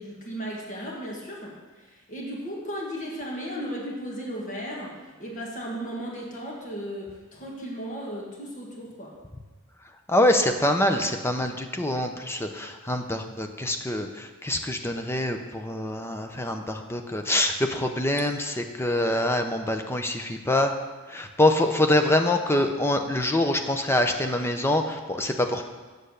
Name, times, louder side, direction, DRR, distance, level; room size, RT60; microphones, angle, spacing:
voice 1, 0.0-9.1, equal, 40° left, -3 dB, 1.7 m, -35 dB
voice 2, 10.1-20.7 21.1-25.6, left 1 dB, 10° left, 5 dB, 0.7 m, -25 dB
8.0 x 6.8 x 6.5 m, 1.3 s
head